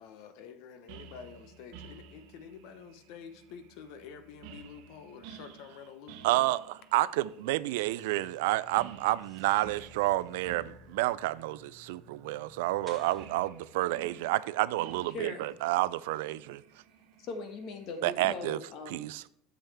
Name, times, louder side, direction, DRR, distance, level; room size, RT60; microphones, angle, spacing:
voice 1, 0.0-6.5, left 7 dB, 65° left, 1.0 m, -48 dB
sound 1, 0.9-18.2, right 7 dB, 70° right, 1.0 m, -53 dB
voice 2, 6.2-16.6 18.0-18.6 18.9-19.2, right 17 dB, 85° right, 0.4 m, -30 dB
sound 2, 7.8-13.3, left 1 dB, 10° right, 2.2 m, -57 dB
voice 3, 15.1-15.5 17.2-19.1, left 3 dB, 50° left, 1.6 m, -40 dB
10.5 x 7.1 x 3.5 m
supercardioid pair, 135°, 0 cm